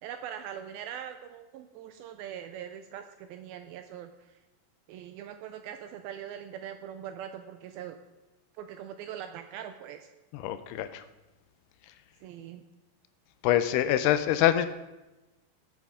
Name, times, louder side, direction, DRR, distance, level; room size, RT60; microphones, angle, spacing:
voice 1, 0.0-4.4 4.9-8.0 8.6-10.1 12.2-12.6, right 9 dB, 85° right, 8 dB, 2.1 m, -42 dB
voice 2, 10.3-11.0 13.4-14.7, left 12 dB, 80° left, 11 dB, 2.6 m, -25 dB
19.5 x 8.3 x 3.6 m, 1.1 s
omnidirectional pair, 4.7 m